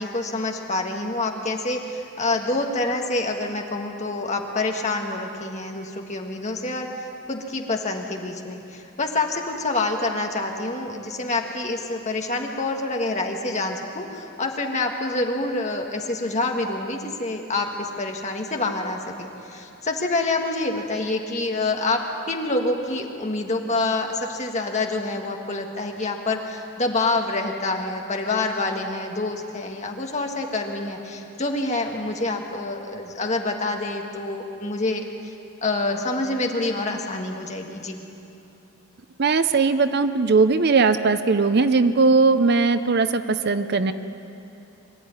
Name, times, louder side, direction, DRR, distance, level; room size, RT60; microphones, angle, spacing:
voice 1, 0.0-22.0 22.3-35.3 35.6-38.0, left 2 dB, 30° left, 2 dB, 1.7 m, -27 dB
voice 2, 39.2-43.9, right 4 dB, 45° right, 11 dB, 0.6 m, -19 dB
23.5 x 13.0 x 9.6 m, 2.9 s
head